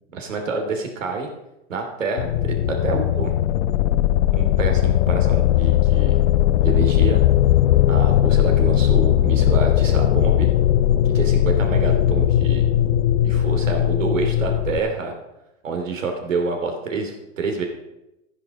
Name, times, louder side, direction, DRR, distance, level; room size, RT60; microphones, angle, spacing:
voice 1, 0.1-1.3 1.7-3.3 4.3-6.1 6.6-7.2 7.9-10.5 11.0-12.6 13.2-15.1 15.6-17.7, right 4 dB, 85° right, 4 dB, 2.9 m, -27 dB
sound 1, 2.2-14.8, left 12 dB, 70° left, 0.7 m, -18 dB
12.0 x 10.0 x 5.1 m, 0.91 s
hypercardioid pair, 110°, 37 cm